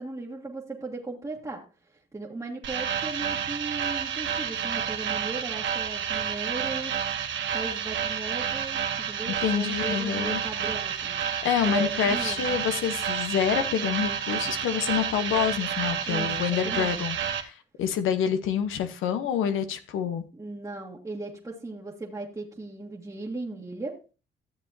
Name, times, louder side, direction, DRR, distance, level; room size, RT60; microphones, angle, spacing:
voice 1, 0.0-1.6 2.1-6.9 7.5-8.8 9.1-12.4 16.1-16.9 20.3-23.9, right 2 dB, 15° right, -4 dB, 1.6 m, -37 dB
sound 1, 2.6-17.4, right 8 dB, 70° right, 1.2 m, -30 dB
voice 2, 9.4-10.4 11.4-20.2, left 8 dB, 85° left, 9 dB, 1.0 m, -27 dB
13.0 x 7.3 x 2.7 m, 0.34 s
cardioid pair, 90°, 20 cm